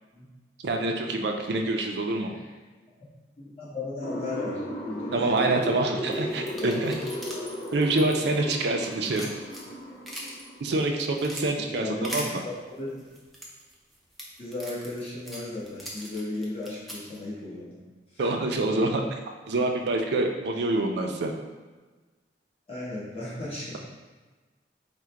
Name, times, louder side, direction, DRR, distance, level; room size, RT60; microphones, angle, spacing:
voice 1, 0.6-2.3 5.1-7.0 7.7-9.3 10.6-12.4 18.2-19.0 19.5-21.3, right 2 dB, 65° right, 3 dB, 0.4 m, -26 dB
voice 2, 2.2-2.5 3.4-5.5 6.1-6.7 11.6-12.4 12.8-13.0 14.4-17.8 18.1-18.3 20.5-20.6 22.7-23.8, left 2 dB, 30° left, -9 dB, 1.2 m, -36 dB
sound 1, 4.0-10.8, equal, 50° left, 0.7 m, -35 dB
sound 2, 6.1-8.6 8.9-10.4 10.9-11.4 12.0-12.3 13.0-17.2, equal, ahead, 0.4 m, -40 dB
3.6 x 2.1 x 4.4 m, 1.3 s
head